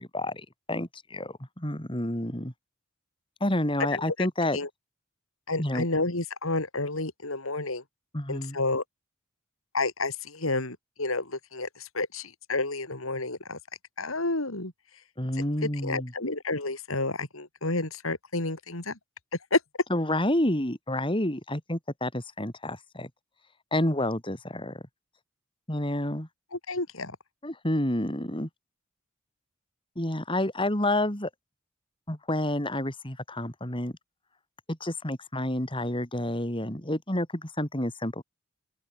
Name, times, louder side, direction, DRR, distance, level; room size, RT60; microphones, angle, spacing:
voice 1, 0.0-2.5 3.4-4.6 5.6-5.9 8.1-8.6 15.2-16.1 19.9-23.1 23.7-24.8 25.7-26.3 27.4-28.5 30.0-31.3 32.1-33.9 34.7-38.2, left 1 dB, 25° left, 4.3 m, -29 dB
voice 2, 3.9-4.3 4.5-4.7 5.5-7.8 8.3-8.8 9.7-13.6 14.0-14.7 15.8-19.0 19.5-19.6 26.5-27.2, left 2 dB, 80° left, 4.2 m, -30 dB
open air
head